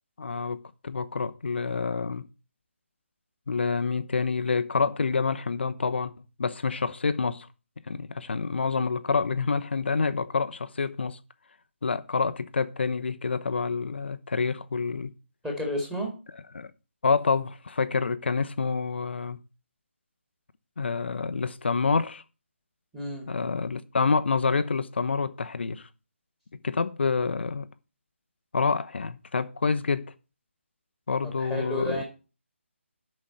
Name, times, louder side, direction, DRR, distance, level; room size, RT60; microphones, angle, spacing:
voice 1, 0.2-2.2 3.5-6.1 6.4-7.5 7.9-11.2 11.8-15.1 16.5-16.7 17.0-19.4 20.8-22.2 23.3-25.9 26.6-27.7 28.5-30.1 31.1-32.0, left 4 dB, 55° left, 0.7 m, -27 dB
voice 2, 15.4-16.1 22.9-23.3 31.2-32.0, left 1 dB, 5° right, 2.1 m, -31 dB
7.4 x 6.1 x 7.8 m
figure-of-eight pair, 150°, 7 cm